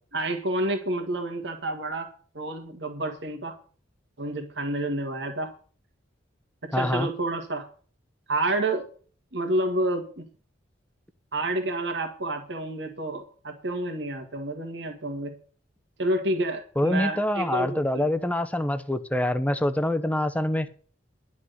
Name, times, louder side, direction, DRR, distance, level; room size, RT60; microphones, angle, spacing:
voice 1, 0.1-2.1 2.3-3.6 4.2-5.5 6.6-7.7 8.3-8.9 9.3-10.3 11.3-15.3 16.0-18.1, right 1 dB, 60° right, 1.8 m, -29 dB
voice 2, 6.7-7.1 16.8-20.7, left 1 dB, 10° left, 0.9 m, -25 dB
11.5 x 6.0 x 8.0 m
head